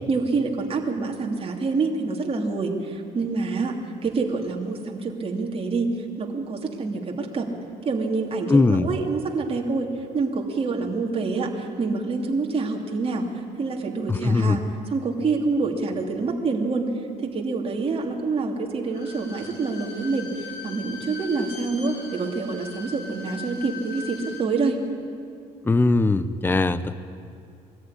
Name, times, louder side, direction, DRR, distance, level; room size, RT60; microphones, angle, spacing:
voice 1, 0.1-3.7 4.0-5.9 6.2-7.5 7.8-13.3 13.6-14.6 14.9-16.9 17.2-24.8, right 4 dB, 35° right, 1 dB, 2.8 m, -26 dB
voice 2, 8.5-8.9 14.1-14.6 25.6-27.0, left 3 dB, 10° left, 14 dB, 0.7 m, -20 dB
Bowed string instrument, 18.8-24.5 24.8-24.9, left 4 dB, 75° left, 4.0 m, -40 dB
22.0 x 14.0 x 9.8 m, 2.4 s
cardioid pair, 110°, 17 cm